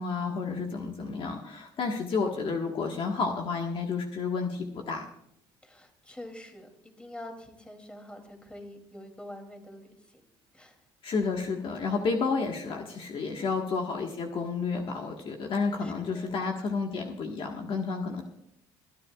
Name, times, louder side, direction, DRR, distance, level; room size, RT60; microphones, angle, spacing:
voice 1, 0.0-5.1 11.0-18.2, left 4 dB, 50° left, 2 dB, 1.6 m, -31 dB
voice 2, 5.6-10.2 10.5-10.8 13.4-13.6 15.8-16.4, left 1 dB, 10° left, 4 dB, 2.9 m, -46 dB
28.5 x 10.5 x 2.4 m, 0.74 s
supercardioid pair, 85°, 11 cm